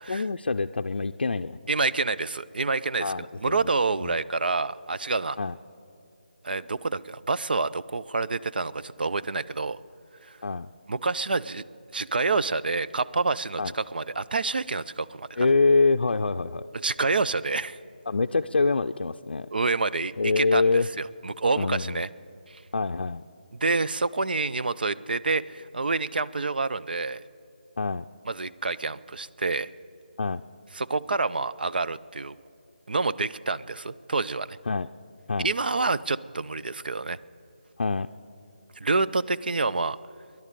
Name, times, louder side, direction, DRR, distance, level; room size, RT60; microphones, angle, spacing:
voice 1, 0.1-1.6 3.0-3.7 4.0-4.2 5.4-5.6 10.4-10.7 13.6-13.7 15.4-16.7 18.1-19.5 20.2-20.9 21.5-22.0 22.7-23.2 27.8-28.0 30.2-30.4 34.7-34.9 35.3-35.5 37.8-38.1, left 3 dB, 80° left, 6 dB, 0.4 m, -25 dB
voice 2, 1.7-5.4 6.4-9.8 10.9-11.6 11.9-15.3 16.8-17.8 19.5-22.1 22.5-22.6 23.6-27.2 28.3-29.7 30.7-32.4 32.9-34.6 35.4-37.2 38.8-40.0, right 3 dB, 65° right, 14 dB, 0.5 m, -27 dB
19.5 x 11.0 x 6.8 m, 2.7 s
figure-of-eight pair, 170°, 5 cm